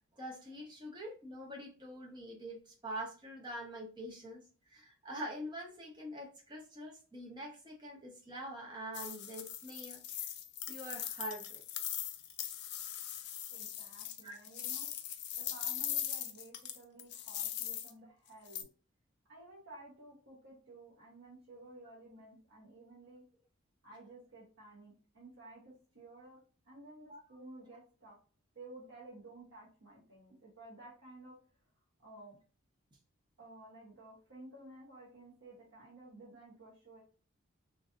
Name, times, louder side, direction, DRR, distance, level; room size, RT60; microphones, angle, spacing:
voice 1, 0.1-10.0 10.7-11.6 14.2-14.4 27.1-27.2, equal, 20° right, -1 dB, 0.7 m, -45 dB
sound 1, 8.9-17.9 18.5-18.6, left 11 dB, 50° left, 0.3 m, -40 dB
voice 2, 13.5-14.9 15.4-18.7 19.3-23.2 23.8-26.4 26.6-28.2 28.5-31.4 32.0-32.4 33.4-37.0, right 2 dB, 75° right, -5 dB, 1.0 m, -54 dB
3.2 x 2.6 x 2.4 m, 0.37 s
head